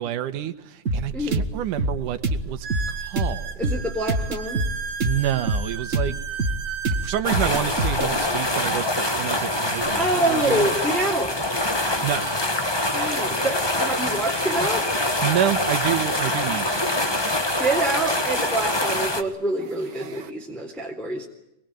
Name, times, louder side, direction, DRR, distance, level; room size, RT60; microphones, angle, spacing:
voice 1, 0.0-2.7 3.0-3.6 5.0-6.2 7.0-10.6 12.0-12.3 15.2-17.2, right 11 dB, 85° right, 12 dB, 2.8 m, -28 dB
sound 1, 0.8-8.1, right 2 dB, 35° right, 1.4 m, -26 dB
sound 2, 0.9-1.0 1.7-1.8 2.6-7.3 9.2-10.8 11.8-11.9 12.2-12.4 13.2-13.3 15.5-15.6 17.7-17.8 18.5-18.8 19.4-20.3, right 6 dB, 50° right, 2.6 m, -36 dB
voice 2, 1.1-1.4 3.6-4.6 9.9-11.4 12.9-14.9 17.6-21.3, right 1 dB, ahead, 0 dB, 3.4 m, -26 dB
sound 3, 7.2-19.2, left 1 dB, 20° left, 0.7 m, -25 dB
24.5 x 22.0 x 9.0 m, 0.86 s
omnidirectional pair, 3.5 m